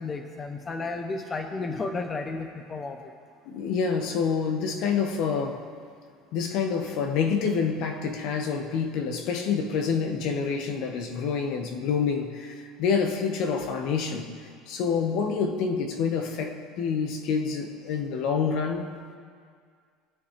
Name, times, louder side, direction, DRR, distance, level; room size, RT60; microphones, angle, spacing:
voice 1, 0.0-3.0, left 3 dB, 20° left, 5 dB, 0.8 m, -32 dB
voice 2, 3.4-5.7 6.3-14.3 14.7-18.9, left 6 dB, 60° left, 5 dB, 1.4 m, -27 dB
22.5 x 8.4 x 3.3 m, 2.1 s
cardioid pair, 140°, 0 cm